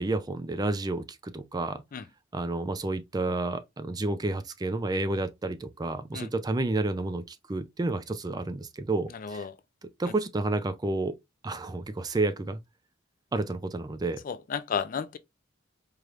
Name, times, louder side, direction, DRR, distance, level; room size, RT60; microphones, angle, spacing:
voice 1, 0.0-1.8 2.3-9.4 10.0-11.2 11.4-12.6 13.3-14.2, right 2 dB, 20° right, 0.4 m, -30 dB
voice 2, 9.1-9.5 14.2-15.2, left 6 dB, 45° left, 0.4 m, -33 dB
4.7 x 3.1 x 2.4 m
head